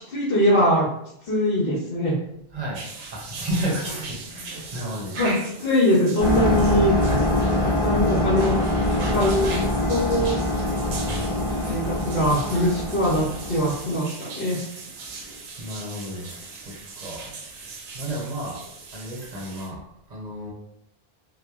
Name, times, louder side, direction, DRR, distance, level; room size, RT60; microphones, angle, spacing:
voice 1, 0.1-0.9 1.3-2.1 5.1-5.3 5.6-6.9 7.8-8.5 9.1-9.6 9.9-10.3 11.6-13.2 13.5-14.6, left 1 dB, 60° left, -5 dB, 0.9 m, -22 dB
voice 2, 2.5-2.8 3.1-5.2 7.0-7.3 10.9-11.4 15.2-15.3 15.6-18.6 18.9-19.8 20.1-20.5, right 1 dB, 45° right, -3 dB, 0.7 m, -32 dB
sound 1, 2.7-19.7, right 3 dB, 75° right, 0.8 m, -39 dB
sound 2, 6.2-13.8, left 1 dB, 30° left, 0.5 m, -24 dB
2.9 x 2.0 x 2.3 m, 0.75 s
omnidirectional pair, 1.1 m